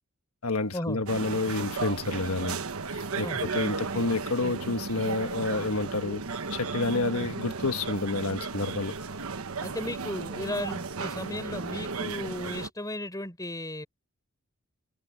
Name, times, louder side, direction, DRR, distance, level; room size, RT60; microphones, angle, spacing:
voice 1, 0.4-2.6 2.9-6.2 6.5-9.0, left 3 dB, 85° left, 1.5 m, -29 dB
sound 1, 1.1-12.7, right 4 dB, 80° right, 1.2 m, -34 dB
voice 2, 9.6-13.9, left 1 dB, 15° left, 4.1 m, -35 dB
head